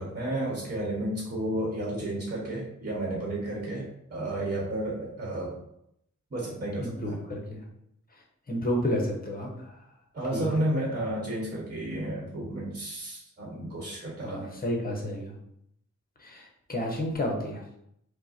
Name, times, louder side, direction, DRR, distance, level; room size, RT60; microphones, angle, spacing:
voice 1, 0.0-5.6 6.3-7.2 10.1-14.5, right 1 dB, 30° right, -3 dB, 1.2 m, -32 dB
voice 2, 6.8-7.6 8.5-9.8 10.3-10.6 14.2-15.4 16.2-17.6, equal, 30° left, 0 dB, 0.9 m, -31 dB
5.3 x 2.2 x 4.2 m, 0.76 s
wide cardioid pair, 170°, 31 cm